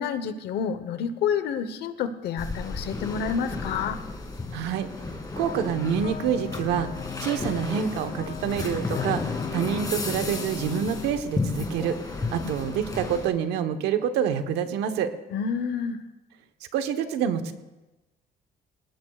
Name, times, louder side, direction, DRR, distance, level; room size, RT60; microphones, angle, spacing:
voice 1, 0.0-4.0 15.3-16.1, left 7 dB, 75° left, 12 dB, 1.1 m, -29 dB
sound 1, 2.4-13.3, left 3 dB, 20° left, 2.3 m, -33 dB
voice 2, 4.5-5.1 5.4-15.1 16.7-17.5, right 8 dB, 85° right, 8 dB, 1.1 m, -27 dB
sound 2, 5.4-11.2, left 9 dB, 45° left, 0.8 m, -38 dB
21.5 x 18.5 x 2.4 m, 1.1 s
cardioid pair, 110°, 17 cm